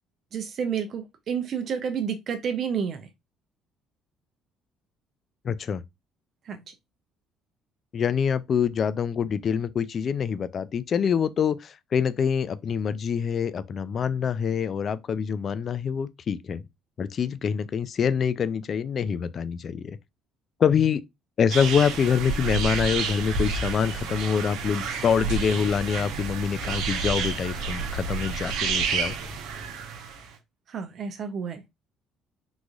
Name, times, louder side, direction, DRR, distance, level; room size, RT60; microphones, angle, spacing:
voice 1, 0.3-3.1 6.5-6.6 30.7-31.6, right 7 dB, 55° right, 0.6 m, -30 dB
voice 2, 5.4-5.8 7.9-16.6 17.0-20.0 20.6-21.0 21.4-29.2, left 7 dB, 45° left, 0.4 m, -25 dB
sound 1, 21.5-30.3, right 5 dB, 80° right, 0.9 m, -30 dB
3.8 x 3.0 x 2.4 m
cardioid pair, 90°, 0 cm